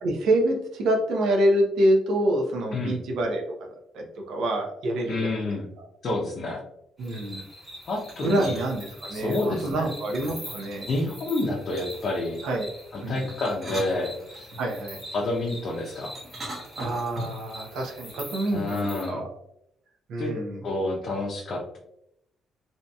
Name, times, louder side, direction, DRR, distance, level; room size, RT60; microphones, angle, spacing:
voice 1, 0.0-3.4 3.9-5.4 5.8-5.9 7.0-7.4 8.2-10.9 12.4-12.7 13.0-13.3 14.6-15.0 16.8-19.3 20.1-20.6, right 1 dB, 80° right, 1 dB, 0.6 m, -26 dB
voice 2, 5.1-5.7 6.0-6.6 7.9-8.6 9.1-9.9 10.9-12.4 12.9-14.5 15.1-16.2 18.5-19.2 20.2-20.3 20.6-21.8, left 2 dB, 55° left, -2 dB, 0.5 m, -29 dB
sound 1, 7.0-19.1, equal, 5° left, 1.3 m, -44 dB
sound 2, 8.0-8.7 10.1-11.1 11.8-12.2 13.3-14.6 16.1-17.5, right 1 dB, 40° right, 0.9 m, -39 dB
2.7 x 2.6 x 2.2 m, 0.77 s
cardioid pair, 90°, 0 cm